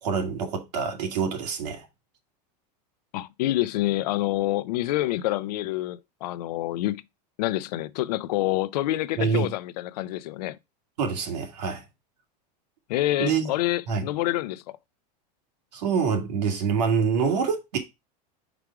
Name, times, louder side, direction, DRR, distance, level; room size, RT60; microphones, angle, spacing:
voice 1, 0.0-1.9 9.2-9.5 11.0-11.8 13.2-13.5 13.9-14.1 15.7-17.8, right 6 dB, 85° right, 2.0 m, -26 dB
voice 2, 3.1-7.0 7.4-10.6 12.9-14.8, left 16 dB, 75° left, 0.5 m, -27 dB
5.0 x 4.8 x 4.5 m
supercardioid pair, 145°, 21 cm